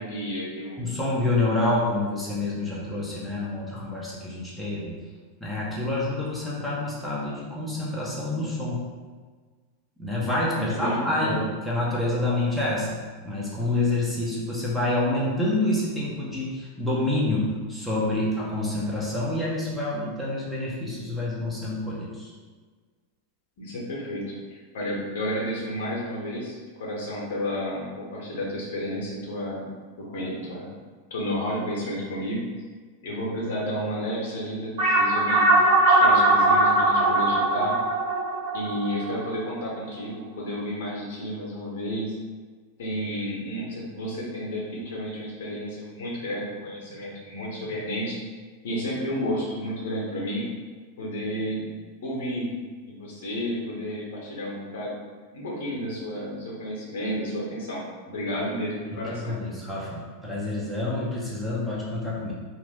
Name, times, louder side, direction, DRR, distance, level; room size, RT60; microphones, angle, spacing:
voice 1, 0.0-0.9 10.5-11.4 23.6-24.2 24.5-30.7 31.1-32.4 33.0-35.5 35.9-37.8 38.5-42.1 42.8-48.2 48.6-50.5 51.0-51.7 52.0-52.5 52.9-55.0 55.3-59.4, equal, 55° left, -4 dB, 0.9 m, -31 dB
voice 2, 0.8-5.0 5.4-8.8 10.0-13.0 13.2-22.3 58.9-62.3, left 2 dB, ahead, -7 dB, 0.7 m, -27 dB
sound 1, 34.8-39.6, right 2 dB, 55° right, 1.0 m, -20 dB
2.5 x 2.4 x 3.5 m, 1.5 s
figure-of-eight pair, 90°, 0 cm